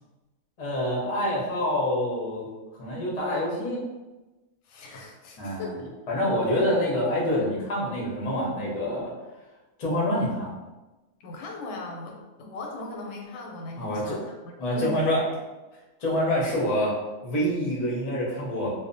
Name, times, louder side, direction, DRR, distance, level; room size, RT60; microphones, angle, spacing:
voice 1, 0.6-2.5 2.8-3.8 5.4-5.7 6.1-9.1 9.8-10.6 13.8-14.2 14.6-15.2 16.0-16.9 17.2-18.7, left 1 dB, 50° left, -4 dB, 0.4 m, -26 dB
voice 2, 4.6-6.0 11.2-14.4 14.7-15.4 16.5-16.6, left 2 dB, 85° left, 1 dB, 1.1 m, -38 dB
2.6 x 2.1 x 2.5 m, 1.1 s
omnidirectional pair, 1.6 m